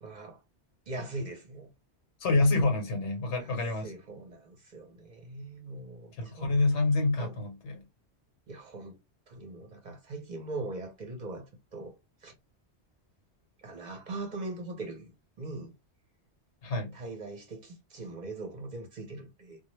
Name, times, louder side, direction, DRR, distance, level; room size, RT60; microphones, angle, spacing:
voice 1, 0.0-0.4 0.9-1.7 3.4-6.5 7.2-7.4 8.5-9.0 9.3-11.9 12.2-12.3 13.6-15.1 15.4-15.7 16.9-19.6, right 2 dB, 50° right, 0.6 m, -41 dB
voice 2, 2.2-3.9 6.2-7.8 16.6-16.9, left 2 dB, 90° left, 1.1 m, -27 dB
2.1 x 2.0 x 3.0 m
omnidirectional pair, 1.1 m